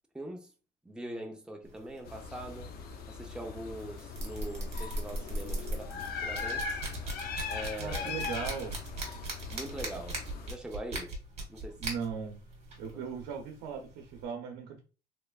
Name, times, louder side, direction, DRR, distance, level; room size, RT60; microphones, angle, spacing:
voice 1, 0.1-0.5 0.8-2.7 3.1-6.8 7.5-8.3 9.5-10.2 10.4-11.1 11.5-11.8 12.9-13.0, right 1 dB, 5° right, 0.6 m, -42 dB
sound 1, 1.6-14.3, right 1 dB, 40° right, 1.5 m, -41 dB
sound 2, 2.1-10.5, left 5 dB, 65° left, 0.6 m, -40 dB
voice 2, 7.8-8.8 11.8-12.4 12.8-14.8, right 6 dB, 90° right, 0.7 m, -38 dB
3.4 x 3.1 x 2.3 m
cardioid pair, 110°, 17 cm